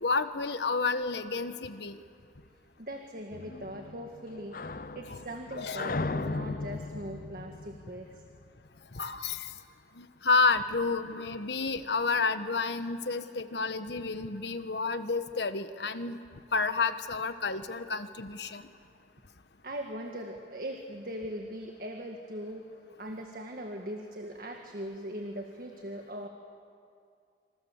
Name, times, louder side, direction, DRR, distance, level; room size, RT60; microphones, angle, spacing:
voice 1, 0.0-2.0 5.6-5.8 8.9-9.5 10.0-16.2 16.5-18.6, left 4 dB, 70° left, 10 dB, 1.3 m, -30 dB
voice 2, 2.8-8.2 19.6-26.3, equal, 50° right, 3 dB, 1.8 m, -40 dB
sound 1, 3.3-8.8, left 3 dB, 50° left, 0.7 m, -37 dB
27.0 x 26.5 x 7.3 m, 2.4 s
head